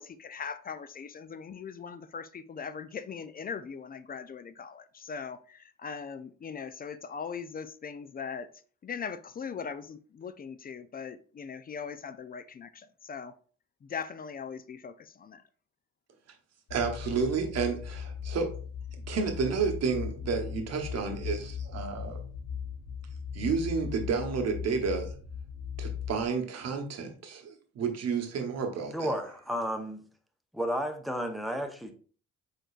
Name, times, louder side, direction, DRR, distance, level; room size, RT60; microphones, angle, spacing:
voice 1, 0.0-8.5 8.8-13.3 13.8-15.4, left 6 dB, 30° left, 12 dB, 0.4 m, -40 dB
sound 1, 16.7-26.3, left 7 dB, 80° left, 0.9 m, -38 dB
voice 2, 16.7-18.5 19.1-22.2 23.3-25.1 25.8-29.1, right 5 dB, 60° right, 4 dB, 1.1 m, -31 dB
voice 3, 28.9-30.0 30.5-31.9, equal, ahead, 4 dB, 0.7 m, -32 dB
5.1 x 3.8 x 2.4 m, 0.42 s
cardioid pair, 90°, 30 cm